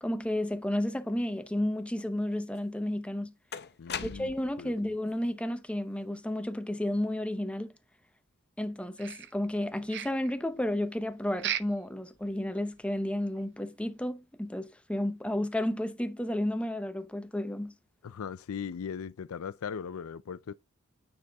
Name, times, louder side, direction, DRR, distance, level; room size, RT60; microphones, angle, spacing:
voice 1, 0.0-3.3 4.0-7.7 8.6-17.7, left 1 dB, 5° left, 0.8 m, -32 dB
sound 1, 2.6-2.7 3.5-4.6, left 7 dB, 50° left, 0.8 m, -39 dB
voice 2, 3.8-4.7 18.0-20.5, left 7 dB, 75° left, 0.4 m, -39 dB
sound 2, 9.0-9.6 9.9-10.3 11.4-11.9 12.2-12.3 12.8-12.9 13.4-13.5, right 11 dB, 55° right, 0.6 m, -36 dB
9.6 x 4.1 x 3.5 m
head